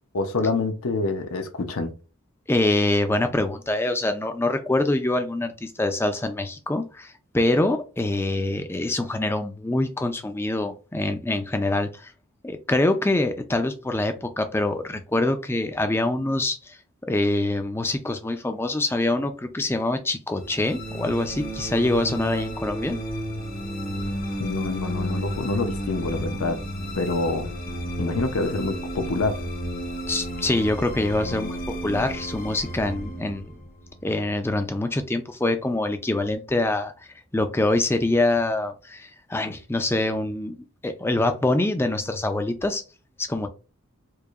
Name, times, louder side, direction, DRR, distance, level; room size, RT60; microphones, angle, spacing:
voice 1, 0.1-1.9 24.4-26.6 26.9-27.5 28.0-29.4, left 3 dB, 75° left, 0.7 m, -26 dB
voice 2, 2.5-12.1 12.4-16.8 17.1-23.0 30.1-31.6 31.8-33.5 34.0-40.6 40.8-42.8 43.2-43.5, left 2 dB, 10° left, 0.4 m, -25 dB
sound 1, 20.4-34.8, equal, 40° left, 0.7 m, -32 dB
4.7 x 2.6 x 2.4 m
head